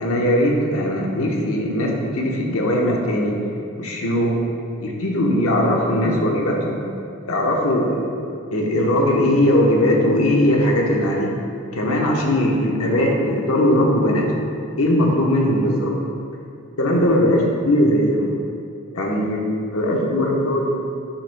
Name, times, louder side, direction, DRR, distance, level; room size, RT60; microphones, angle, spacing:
voice 1, 0.0-3.4 3.8-4.4 4.8-6.8 7.3-8.0 8.5-11.3 11.7-14.5 14.8-15.9 16.8-18.3 18.9-19.4 19.7-20.8, left 1 dB, 90° left, -1 dB, 1.0 m, -19 dB
7.9 x 7.1 x 2.2 m, 2.6 s
head